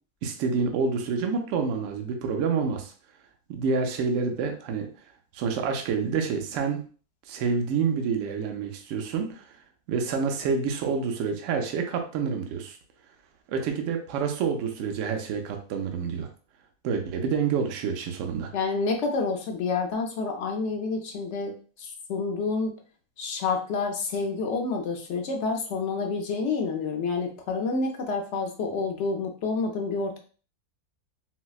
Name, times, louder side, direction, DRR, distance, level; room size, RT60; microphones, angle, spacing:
voice 1, 0.2-2.9 3.5-4.9 5.3-6.8 7.3-9.6 9.9-12.8 13.5-16.3 16.8-18.5, right 5 dB, 70° right, 4 dB, 0.8 m, -28 dB
voice 2, 18.5-22.7 23.2-30.2, left 4 dB, 65° left, 3 dB, 0.8 m, -28 dB
4.0 x 2.0 x 2.3 m, 0.39 s
omnidirectional pair, 1.5 m